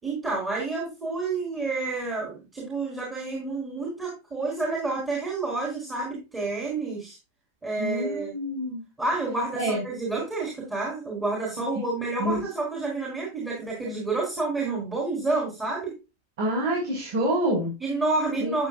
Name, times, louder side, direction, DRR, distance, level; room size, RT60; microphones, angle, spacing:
voice 1, 0.0-7.2 7.6-8.3 9.0-15.9 17.8-18.7, right 3 dB, 15° right, -2 dB, 4.4 m, -29 dB
voice 2, 7.8-8.8 9.5-9.8 12.2-12.4 16.4-17.7 18.4-18.5, right 1 dB, 50° right, -3 dB, 6.3 m, -27 dB
13.5 x 8.3 x 2.5 m, 0.26 s
figure-of-eight pair, 90°, 0 cm